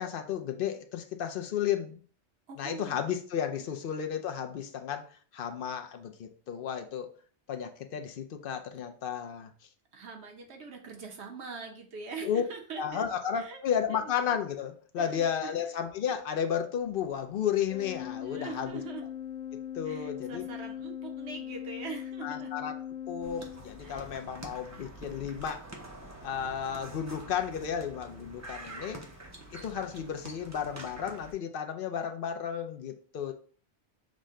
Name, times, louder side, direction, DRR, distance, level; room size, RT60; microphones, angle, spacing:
voice 1, 0.0-2.0 2.6-5.0 5.3-7.1 7.5-9.5 12.2-12.4 12.8-18.8 19.5-20.5 22.2-22.7 23.1-25.7 26.2-29.0 29.5-33.3, left 8 dB, 60° left, 6 dB, 0.7 m, -33 dB
voice 2, 2.5-3.0 9.9-13.1 13.3-13.6 13.9-14.1 15.0-15.7 18.2-19.1 19.8-22.5 23.8-24.1, right 5 dB, 65° right, 3 dB, 1.1 m, -43 dB
Organ, 17.7-24.2, left 10 dB, 80° left, 1.0 m, -40 dB
sound 1, 23.2-31.3, right 2 dB, 20° right, 0.5 m, -46 dB
6.3 x 2.1 x 3.6 m, 0.43 s
omnidirectional pair, 1.2 m